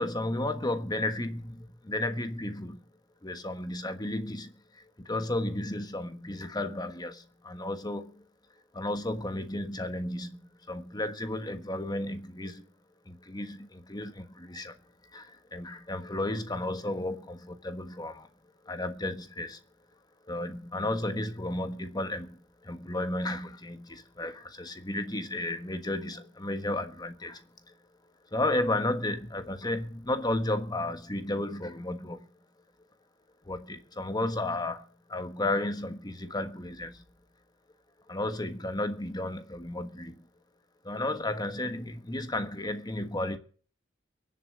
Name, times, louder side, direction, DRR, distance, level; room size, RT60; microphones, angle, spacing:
voice 1, 0.0-2.8 3.2-8.2 8.7-10.4 10.7-12.7 13.1-14.8 15.1-18.3 18.6-19.6 20.3-27.7 28.3-32.2 33.4-37.0 38.1-40.3 40.8-43.4, left 1 dB, 20° left, 1.4 m, -33 dB
22.5 x 8.0 x 6.4 m
head